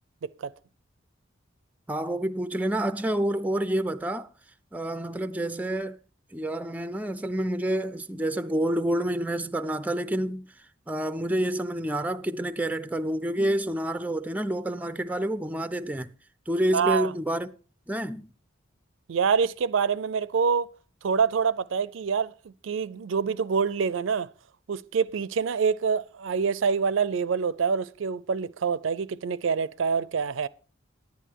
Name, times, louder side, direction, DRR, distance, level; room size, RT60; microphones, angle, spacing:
voice 1, 1.9-4.3 4.7-6.0 6.3-10.5 10.9-16.1 16.5-17.5 17.9-18.3, right 1 dB, 10° right, 0.4 m, -28 dB
voice 2, 16.7-17.1 19.1-20.7 21.0-24.3 24.7-30.5, right 6 dB, 70° right, 0.4 m, -26 dB
10.5 x 10.0 x 4.6 m
head